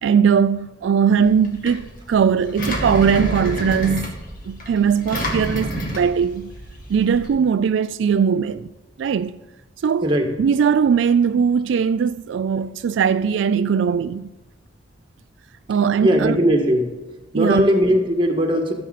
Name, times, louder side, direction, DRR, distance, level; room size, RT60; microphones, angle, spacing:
voice 1, 0.0-4.1 4.5-6.5 6.9-8.7 9.0-9.4 9.8-10.1 10.4-14.3 15.7-16.4 17.3-17.7, right 7 dB, 75° right, 0.3 m, -19 dB
Engine, 1.2-7.3, equal, 50° left, 2.2 m, -29 dB
voice 2, 16.0-16.9 17.3-18.7, equal, 25° right, 1.6 m, -18 dB
14.0 x 7.6 x 4.1 m
head